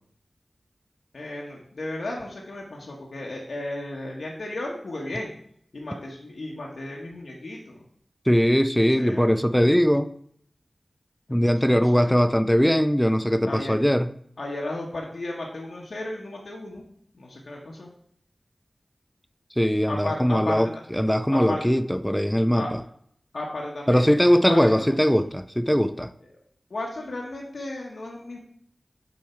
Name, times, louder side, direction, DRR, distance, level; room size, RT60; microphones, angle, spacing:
voice 1, 1.1-5.3 5.7-7.8 8.8-9.3 11.3-12.2 13.5-13.8 14.4-16.8 17.1-17.9 19.9-20.6 21.3-21.6 22.5-22.7 23.3-25.1 26.7-28.4, left 2 dB, 75° left, 1.2 m, -34 dB
voice 2, 8.3-10.1 11.3-14.1 19.6-20.7 21.0-22.8 23.9-26.1, equal, 5° left, 0.3 m, -20 dB
6.9 x 4.7 x 4.3 m
wide cardioid pair, 75°, 0 cm